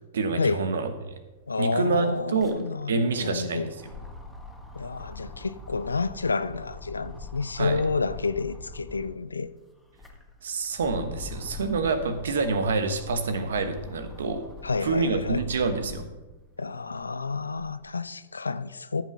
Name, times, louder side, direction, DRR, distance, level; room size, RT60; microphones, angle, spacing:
voice 1, 0.1-1.1 1.6-2.6 2.9-3.9 7.6-7.8 10.4-14.4 14.8-16.1, right 4 dB, 70° right, 1.3 m, -27 dB
sound 1, 1.1-1.2 1.4-9.2 9.7-16.2 16.7-17.9, left 3 dB, 5° left, 1.6 m, -43 dB
voice 2, 1.5-3.7 4.7-9.5 14.6-15.4 16.6-19.0, left 4 dB, 85° left, 0.5 m, -29 dB
13.5 x 6.0 x 5.4 m
figure-of-eight pair, 105°, 0 cm